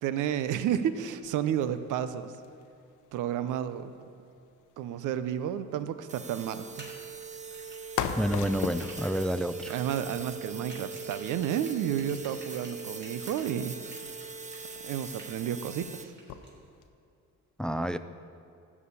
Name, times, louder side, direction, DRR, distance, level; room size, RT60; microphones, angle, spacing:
voice 1, 0.0-2.3 3.1-3.9 4.8-6.9 9.7-13.7 14.8-16.1, right 10 dB, 85° right, 12 dB, 0.7 m, -31 dB
sound 1, 0.6-16.9, left 8 dB, 85° left, 0.8 m, -44 dB
sound 2, 6.1-16.0, right 4 dB, 25° right, 0.8 m, -41 dB
sound 3, 6.8-13.5 13.8-15.4 15.7-16.5, right 2 dB, 40° right, 3.2 m, -51 dB
voice 2, 8.2-9.7 17.6-18.0, equal, 5° left, 12 dB, 0.3 m, -29 dB
13.5 x 4.9 x 8.4 m, 2.5 s
cardioid pair, 90°, 30 cm